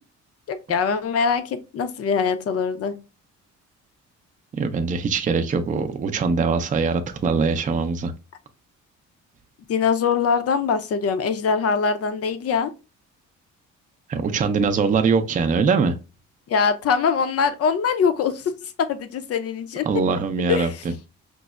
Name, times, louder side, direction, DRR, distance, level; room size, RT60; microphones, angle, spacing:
voice 1, 0.5-3.0 9.7-12.7 16.5-19.9 20.5-20.7, left 6 dB, 55° left, 0.6 m, -23 dB
voice 2, 4.5-8.1 14.1-15.9 19.9-20.7, right 5 dB, 25° right, 0.4 m, -22 dB
5.2 x 2.0 x 2.3 m
cardioid pair, 90°, 30 cm